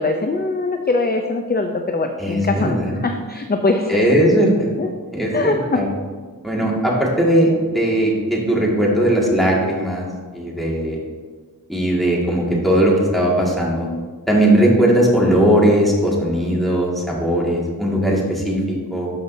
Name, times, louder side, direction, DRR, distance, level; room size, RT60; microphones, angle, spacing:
voice 1, 0.0-4.0 4.8-4.9 5.3-5.8, left 3 dB, 25° left, 5 dB, 0.5 m, -22 dB
voice 2, 2.2-3.0 3.9-4.7 5.1-5.9 6.4-10.1 10.3-11.0 11.7-13.9 14.3-19.1, right 1 dB, ahead, -4 dB, 2.0 m, -18 dB
12.5 x 5.2 x 2.7 m, 1.5 s
wide cardioid pair, 75°, 37 cm